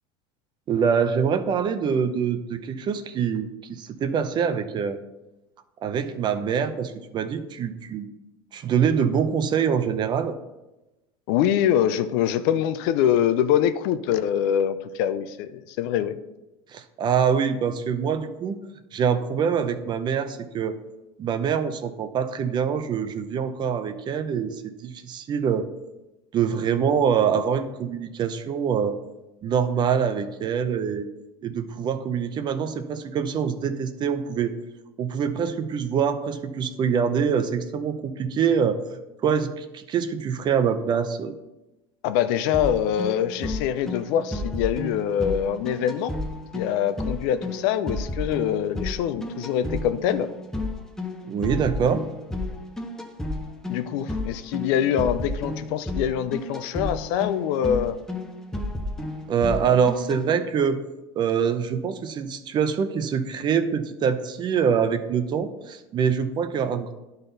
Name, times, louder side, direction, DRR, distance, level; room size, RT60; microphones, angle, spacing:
voice 1, 0.7-5.0 5.8-8.1 8.5-10.3 16.7-18.6 18.9-20.8 21.2-25.7 26.3-29.0 29.4-31.1 31.4-34.5 35.0-38.8 39.2-41.3 51.3-52.0 59.3-60.8 61.1-66.9, right 7 dB, 35° right, 10 dB, 0.7 m, -24 dB
voice 2, 11.3-16.2 42.0-46.1 46.5-50.3 53.7-58.0, left 9 dB, 70° left, 11 dB, 0.5 m, -24 dB
sound 1, 42.5-60.2, left 2 dB, 5° left, 0.8 m, -32 dB
11.0 x 4.0 x 4.0 m, 1.0 s
supercardioid pair, 115°, 12 cm